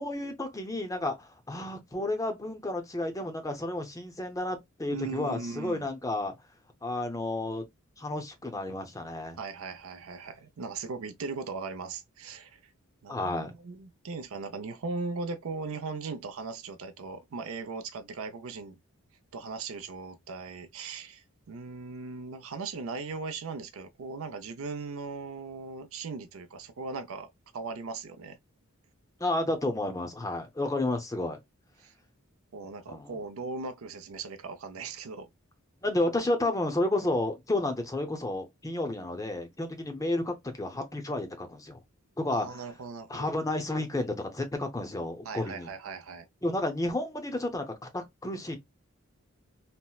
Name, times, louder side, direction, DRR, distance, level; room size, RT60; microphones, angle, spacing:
voice 1, 0.0-6.3 6.8-7.6 8.0-9.4 13.1-13.5 29.2-31.4 32.9-33.2 35.8-41.8 42.2-42.5 43.1-45.7 46.4-48.6, left 2 dB, 15° left, 0.6 m, -31 dB
voice 2, 4.9-5.9 9.4-12.6 13.0-18.8 19.3-27.3 27.5-28.4 31.8-31.9 32.5-35.3 42.3-43.3 45.2-46.3, right 4 dB, 70° right, 0.5 m, -38 dB
4.2 x 2.0 x 2.3 m
head